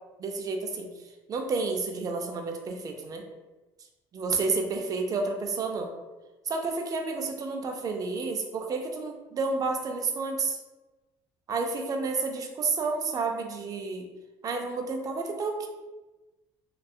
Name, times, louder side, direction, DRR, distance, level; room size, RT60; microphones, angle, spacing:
voice 1, 0.2-0.9 1.3-3.2 4.1-5.9 6.5-10.6 11.5-14.1 14.4-15.7, right 4 dB, 40° right, 3 dB, 0.4 m, -30 dB
2.6 x 2.2 x 2.3 m, 1.1 s
cardioid pair, 95°, 10 cm